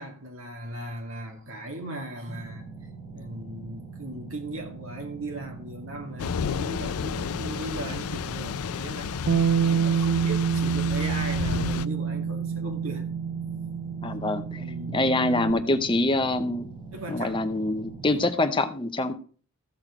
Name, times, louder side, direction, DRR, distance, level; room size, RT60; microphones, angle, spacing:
voice 1, 0.0-2.7 3.1-9.1 9.6-13.1 14.6-15.1 16.9-17.5 18.0-18.3, right 1 dB, 65° right, 2.2 m, -38 dB
sound 1, 2.3-18.3, right 4 dB, 20° right, 3.7 m, -43 dB
Thunder / Rain, 6.2-11.9, left 7 dB, 80° left, 0.4 m, -32 dB
Bass guitar, 9.3-15.5, right 7 dB, 80° right, 0.4 m, -27 dB
voice 2, 14.0-14.6 14.9-16.7 17.1-19.1, left 2 dB, 20° left, 0.7 m, -25 dB
14.0 x 6.5 x 4.9 m
head